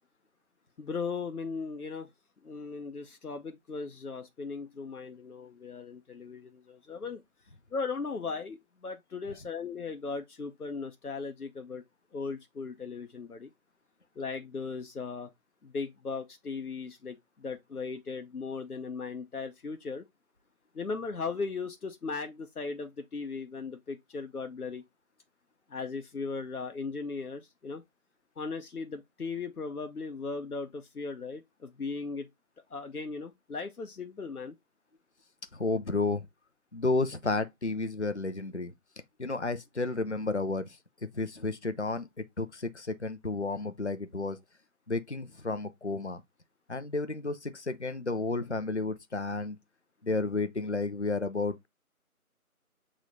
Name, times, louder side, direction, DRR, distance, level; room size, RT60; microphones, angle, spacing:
voice 1, 0.8-2.1 2.4-7.2 7.7-11.8 12.1-13.5 14.2-15.3 15.6-20.0 20.7-24.8 25.7-27.8 28.4-32.3 32.7-34.6, left 4 dB, 85° left, 0.8 m, -37 dB
voice 2, 35.5-36.3 36.7-38.7 39.2-40.8 41.0-42.1 42.4-44.4 44.9-46.2 46.7-49.6 50.0-51.7, left 3 dB, 50° left, 0.4 m, -32 dB
6.4 x 3.1 x 2.6 m
figure-of-eight pair, 170°, 44 cm